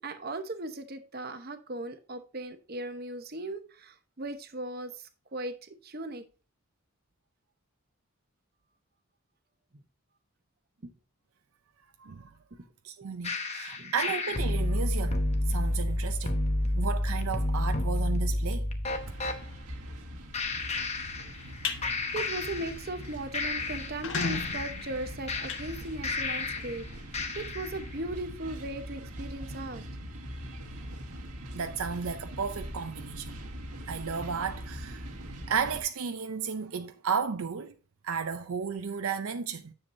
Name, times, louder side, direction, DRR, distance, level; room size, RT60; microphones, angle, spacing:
voice 1, 0.0-6.3 10.8-10.9 13.8-13.9 22.1-26.9 27.3-29.8, right 2 dB, 45° right, 0.9 m, -38 dB
voice 2, 12.0-12.3 12.8-16.4 16.7-18.7 31.5-33.4 33.9-35.1 35.5-37.7 38.0-39.7, right 6 dB, 70° right, 0.5 m, -33 dB
sound 1, 13.2-19.4 20.3-21.6 21.8-23.0 23.3-26.8 27.1-27.8, left 1 dB, 30° left, 0.9 m, -30 dB
sound 2, 18.8-35.8, equal, 90° right, 1.7 m, -42 dB
sound 3, 21.4-21.8 22.3-22.5 22.9-23.0 23.2-23.3 23.8-26.4, left 5 dB, 55° left, 0.9 m, -36 dB
9.9 x 7.1 x 2.6 m
head